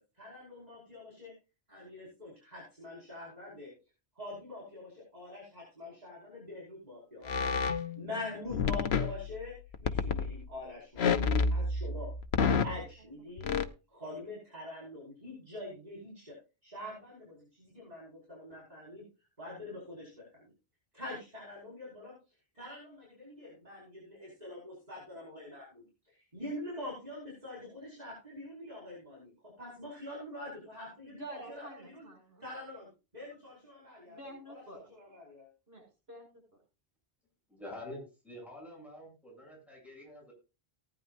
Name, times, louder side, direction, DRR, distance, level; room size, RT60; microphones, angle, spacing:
voice 1, 0.2-1.3 1.7-3.7 4.2-9.5 9.8-12.1 12.5-13.5 13.9-16.4 16.6-19.0 19.4-20.5 20.9-22.2 22.5-32.1 32.4-34.2 34.5-34.6 34.9-35.5, left 1 dB, 40° right, -5 dB, 5.5 m, -45 dB
sound 1, 7.2-8.2 8.5-10.4 11.0-12.8 13.4-13.6, left 5 dB, 85° left, 1.1 m, -30 dB
voice 2, 31.1-32.4 34.0-35.2 35.7-36.4, right 1 dB, 75° right, 0 dB, 7.2 m, -49 dB
voice 3, 37.5-40.3, left 1 dB, ahead, -1 dB, 8.0 m, -47 dB
18.5 x 10.0 x 2.5 m, 0.30 s
omnidirectional pair, 1.0 m